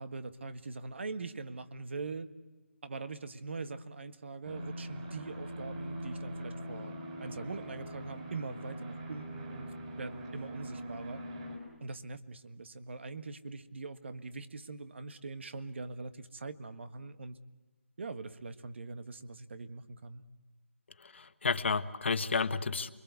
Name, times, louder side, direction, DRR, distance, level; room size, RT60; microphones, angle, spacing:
voice 1, 0.0-2.3 2.8-6.9 7.2-9.7 9.9-11.2 11.8-17.4 18.0-20.2, right 3 dB, 55° right, 11 dB, 1.5 m, -42 dB
sound 1, 4.4-11.6, right 1 dB, 30° right, 5.9 m, -42 dB
voice 2, 21.0-22.9, left 4 dB, 55° left, 11 dB, 1.4 m, -31 dB
29.0 x 22.5 x 8.2 m, 1.2 s
figure-of-eight pair, 165°, 7 cm